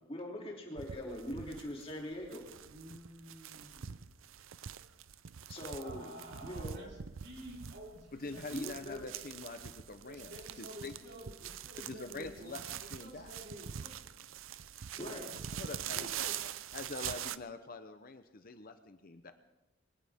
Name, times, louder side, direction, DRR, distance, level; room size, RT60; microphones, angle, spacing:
voice 1, 0.1-2.4 5.5-6.1 6.4-6.8 8.5-9.1 15.0-15.2, left 1 dB, 30° left, -1 dB, 3.0 m, -42 dB
sound 1, 0.8-17.4, right 9 dB, 85° right, 0.6 m, -44 dB
voice 2, 2.6-4.1 5.5-8.9 10.0-14.1 14.9-16.4, equal, 55° right, -2 dB, 4.2 m, -51 dB
voice 3, 8.2-10.9 11.9-12.6 12.9-13.3 15.0-15.2 15.5-16.3 16.7-19.3, left 3 dB, 45° left, 9 dB, 0.9 m, -45 dB
22.0 x 18.0 x 3.7 m, 0.98 s
head